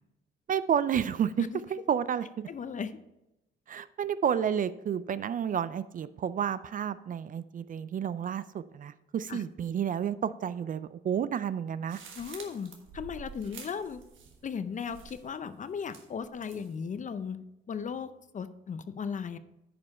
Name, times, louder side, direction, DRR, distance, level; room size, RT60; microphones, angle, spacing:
voice 1, 0.5-2.5 3.7-12.0, right 8 dB, 45° right, 15 dB, 0.4 m, -31 dB
voice 2, 2.5-3.0 9.3-9.4 12.2-14.0 14.4-17.4 17.7-19.4, left 6 dB, 40° left, 12 dB, 0.6 m, -36 dB
sound 1, 11.9-14.5 14.8-15.4 15.9-16.8, right 5 dB, 75° right, 1.4 m, -48 dB
9.5 x 5.4 x 4.3 m, 0.91 s
cardioid pair, 90°, 20 cm